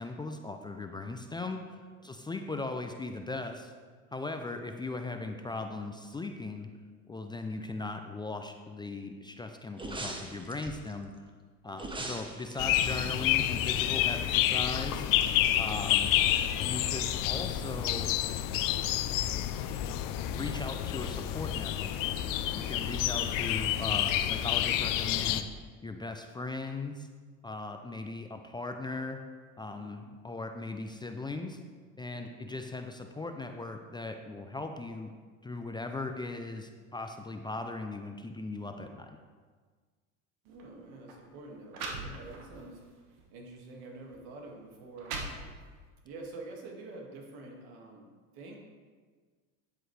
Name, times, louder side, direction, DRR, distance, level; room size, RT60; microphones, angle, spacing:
voice 1, 0.0-3.7 4.1-6.7 7.1-11.1 11.6-15.1 15.6-16.1 16.6-18.1 20.3-22.0 22.5-25.5 25.8-27.1 27.4-29.2 29.6-31.6 32.0-35.1 35.4-39.2, left 2 dB, 10° left, 5 dB, 0.4 m, -38 dB
sound 1, 9.7-10.9 11.7-14.2 14.5-14.6, right 2 dB, 10° right, 1.1 m, -41 dB
sound 2, 12.6-25.4, left 12 dB, 50° left, 0.6 m, -29 dB
voice 2, 15.4-15.9 29.7-30.2 32.1-32.5 40.4-42.8 43.3-45.2 46.0-48.6, right 2 dB, 60° right, 0 dB, 2.1 m, -48 dB
sound 3, 40.5-40.7 41.4-41.5 41.7-42.6 43.2-43.4 44.1-44.2 44.7-45.9, right 3 dB, 85° right, 1.5 m, -40 dB
10.0 x 7.5 x 3.3 m, 1.5 s
supercardioid pair, 100°, 42 cm